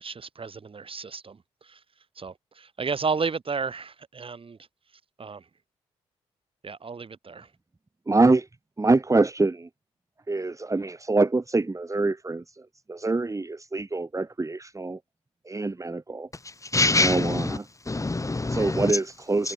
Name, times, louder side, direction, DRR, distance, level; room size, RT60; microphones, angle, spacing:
voice 1, 0.0-1.8 2.1-4.6 4.9-5.5 6.6-7.5, right 5 dB, 45° right, 7.5 m, -33 dB
voice 2, 8.1-8.5 8.8-9.7 10.3-15.0 15.4-16.3 17.0-17.6 18.5-19.5, right 3 dB, 25° right, 3.1 m, -25 dB
voice 3, 16.3-17.6 17.8-18.9 19.4-19.5, left 2 dB, 25° left, 4.6 m, -25 dB
supercardioid pair, 50°, 13 cm